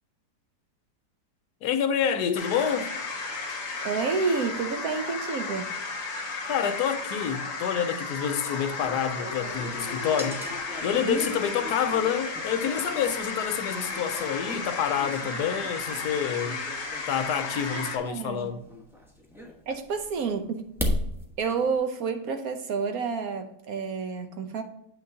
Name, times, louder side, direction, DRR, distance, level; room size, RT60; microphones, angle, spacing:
voice 1, 1.6-2.9 6.5-10.5 10.8-16.6 17.1-18.6, left 8 dB, 75° left, 1.2 m, -28 dB
sound 1, 2.3-18.0, left 3 dB, 50° left, 1.7 m, -34 dB
voice 2, 3.5-5.7 11.1-11.4 17.7-18.6 19.7-20.7 21.4-24.6, right 5 dB, 65° right, 1.1 m, -30 dB
sound 2, 8.7-21.7, left 1 dB, ahead, 0.8 m, -38 dB
8.3 x 6.0 x 2.7 m
omnidirectional pair, 1.8 m